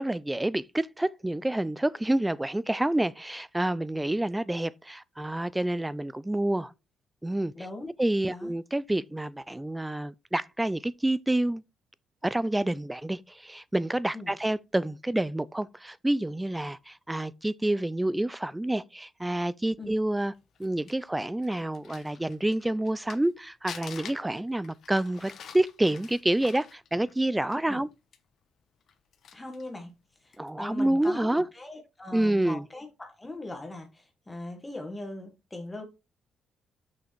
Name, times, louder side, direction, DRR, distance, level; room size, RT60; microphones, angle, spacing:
voice 1, 0.0-6.7 7.2-7.5 8.0-11.6 12.2-20.3 20.6-27.9 30.4-31.5 32.1-32.6, right 1 dB, 10° right, 0.5 m, -28 dB
voice 2, 7.5-7.9 8.3-8.5 14.1-14.3 19.8-19.9 27.7-27.8 29.3-29.9 30.2-35.8, left 2 dB, 15° left, 1.4 m, -40 dB
Crumpling crinkling, 20.3-23.3 23.7-27.8 28.1-28.2 28.8-29.7 30.3-30.5, left 7 dB, 60° left, 1.1 m, -47 dB
6.3 x 5.7 x 4.4 m
cardioid pair, 90°, 0 cm